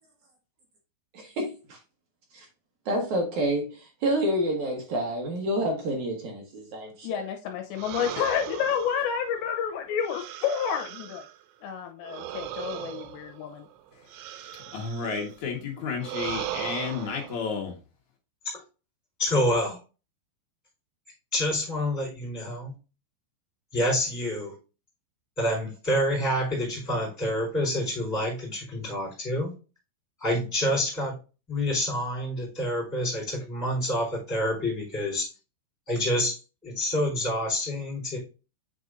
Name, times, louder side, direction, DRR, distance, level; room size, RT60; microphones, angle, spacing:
voice 1, 1.4-1.8 2.3-2.5 2.9-7.3, right 1 dB, 70° right, 1.8 m, -28 dB
voice 2, 7.0-11.3 11.6-13.7, left 8 dB, 80° left, 2.9 m, -30 dB
sound 1, 7.8-11.4 12.0-15.4 16.0-17.4, right 11 dB, 90° right, 3.0 m, -38 dB
voice 3, 14.7-17.7, left 5 dB, 60° left, 2.0 m, -32 dB
voice 4, 19.2-19.8 21.3-22.7 23.7-24.5 25.4-29.5 30.2-31.1 31.5-35.3 35.9-36.3 36.6-38.2, left 1 dB, 5° left, 3.3 m, -27 dB
7.7 x 5.3 x 2.5 m
omnidirectional pair, 5.2 m